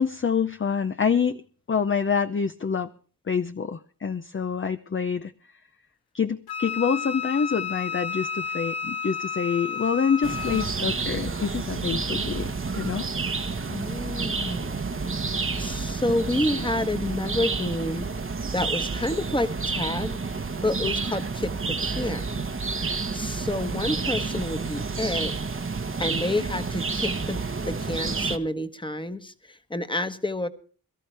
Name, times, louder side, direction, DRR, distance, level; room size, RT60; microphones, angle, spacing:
voice 1, 0.0-1.4 1.7-2.9 3.3-5.3 6.1-13.1 13.5-13.6, left 6 dB, 35° left, 9 dB, 0.7 m, -26 dB
Wind instrument woodwind instrument, 6.5-10.7, left 6 dB, 85° left, 1.1 m, -32 dB
sound 1, 10.2-28.4, right 4 dB, 35° right, 1.2 m, -29 dB
voice 2, 13.6-14.8 15.6-18.1 18.5-20.2 20.6-22.4 23.1-25.3 26.0-30.5, left 1 dB, 15° left, 10 dB, 1.3 m, -29 dB
22.5 x 13.0 x 3.4 m, 0.39 s
cardioid pair, 75°, 36 cm